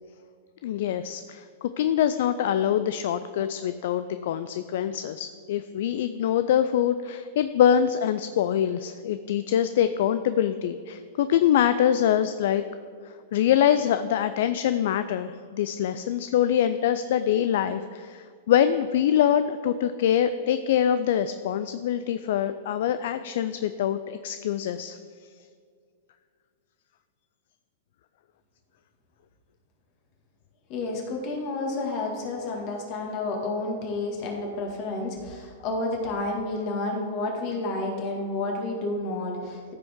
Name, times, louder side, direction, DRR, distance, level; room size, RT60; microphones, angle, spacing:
voice 1, 0.6-12.6 13.3-25.0, left 10 dB, 65° left, 11 dB, 0.3 m, -24 dB
voice 2, 30.7-39.7, left 2 dB, 45° left, 0 dB, 2.0 m, -30 dB
14.5 x 5.1 x 3.7 m, 2.1 s
hypercardioid pair, 105°, 0 cm